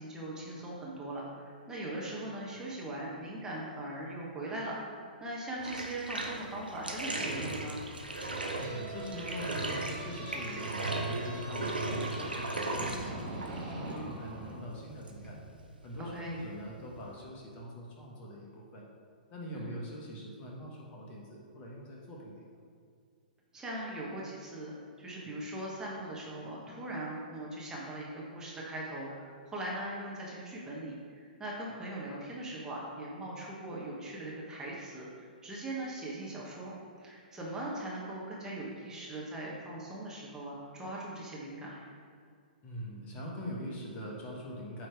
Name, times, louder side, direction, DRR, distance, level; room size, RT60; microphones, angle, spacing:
voice 1, 0.0-7.8 16.0-16.4 19.5-19.8 23.5-41.9, right 1 dB, 10° right, -5 dB, 1.2 m, -40 dB
Bathtub (filling or washing), 5.6-17.3, right 2 dB, 85° right, 0.8 m, -38 dB
sound 1, 8.3-14.6, right 2 dB, 40° right, 1.4 m, -43 dB
voice 2, 8.5-13.4 13.7-15.4 15.8-18.8 19.3-22.6 42.6-44.9, equal, 30° left, -3 dB, 1.4 m, -43 dB
8.5 x 3.2 x 4.6 m, 2.2 s
figure-of-eight pair, 110°, 5 cm